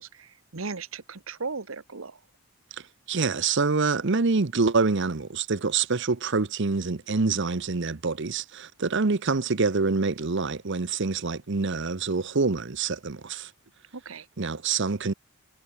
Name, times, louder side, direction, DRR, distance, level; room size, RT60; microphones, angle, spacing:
voice 1, 0.0-2.2 13.9-14.3, right 4 dB, 80° right, 1.3 m, -37 dB
voice 2, 3.1-13.5 14.4-15.1, right 4 dB, 60° right, 0.9 m, -26 dB
head